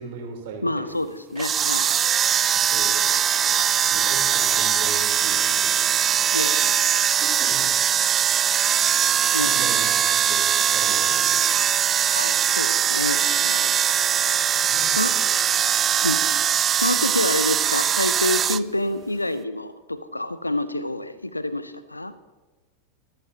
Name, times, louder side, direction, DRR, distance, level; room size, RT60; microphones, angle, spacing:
voice 1, 0.0-0.9 2.7-3.1 3.9-6.0 7.2-7.7 9.4-9.9 10.3-11.6 14.7-15.2, right 4 dB, 50° right, 0 dB, 3.7 m, -38 dB
voice 2, 0.6-2.0 6.3-6.7 9.3-9.6 12.1-13.7 15.0-15.1 16.0-16.2 16.7-22.1, left 2 dB, 85° left, 14 dB, 0.8 m, -27 dB
sound 1, 1.4-18.6, right 9 dB, 25° right, 0.4 m, -21 dB
25.0 x 13.5 x 2.9 m, 1.2 s
figure-of-eight pair, 90°, 0 cm